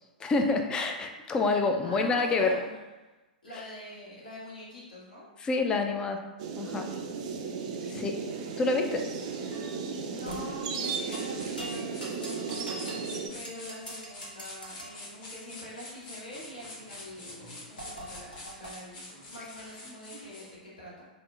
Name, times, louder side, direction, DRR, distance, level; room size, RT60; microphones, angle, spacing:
voice 1, 0.2-2.6 5.4-6.2 6.6-6.9 7.9-8.1 8.6-9.0, left 3 dB, 15° left, 5 dB, 0.3 m, -27 dB
voice 2, 1.8-3.1 3.4-5.3 7.8-8.7 9.7-13.0 13.3-21.1, equal, 70° left, -7 dB, 1.3 m, -45 dB
sound 1, 6.4-13.3, right 5 dB, 50° right, 0.4 m, -35 dB
sound 2, 9.5-9.7 10.3-10.5 11.1-11.3 11.6-13.0 13.4-14.9 17.8-18.7, right 1 dB, 85° left, 0.8 m, -42 dB
sound 3, 10.8-20.6, left 1 dB, 35° left, 1.0 m, -46 dB
4.9 x 2.1 x 2.4 m, 1.1 s
figure-of-eight pair, 100°, 5 cm